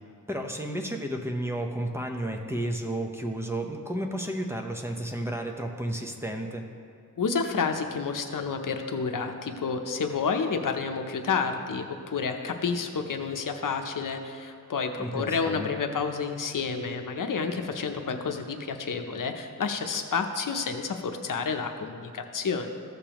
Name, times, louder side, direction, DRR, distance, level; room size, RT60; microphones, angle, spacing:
voice 1, 0.3-6.7 15.0-16.0, right 1 dB, 10° right, 2 dB, 0.8 m, -32 dB
voice 2, 7.2-22.7, left 5 dB, 75° left, 5 dB, 0.7 m, -30 dB
14.5 x 6.7 x 3.0 m, 2.4 s
wide cardioid pair, 110°, 32 cm